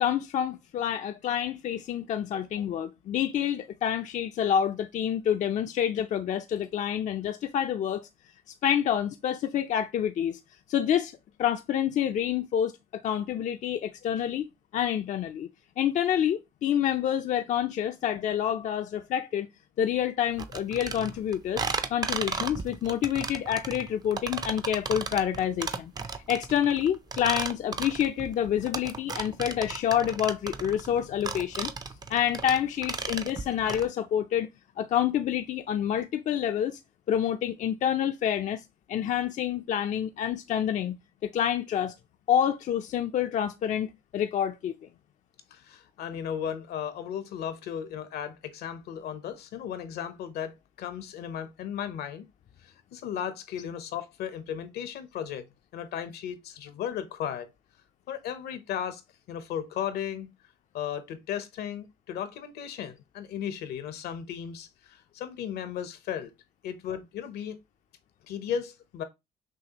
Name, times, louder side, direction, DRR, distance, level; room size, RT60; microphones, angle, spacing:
voice 1, 0.0-8.1 8.6-10.4 10.7-11.1 11.4-14.4 14.7-15.5 15.8-19.5 19.8-25.9 26.3-31.7 32.1-34.5 34.8-36.8 37.1-38.6 38.9-41.0 41.2-41.9 42.3-44.7, left 9 dB, 45° left, 0.4 m, -28 dB
sound 1, 20.4-33.9, right 4 dB, 25° right, 0.4 m, -34 dB
voice 2, 45.5-52.2 52.6-55.4 55.7-57.5 58.1-59.0 59.3-60.3 60.7-66.3 66.6-67.6 68.3-69.0, left 9 dB, 70° left, 0.8 m, -35 dB
6.2 x 2.4 x 2.8 m
cardioid pair, 110°, 17 cm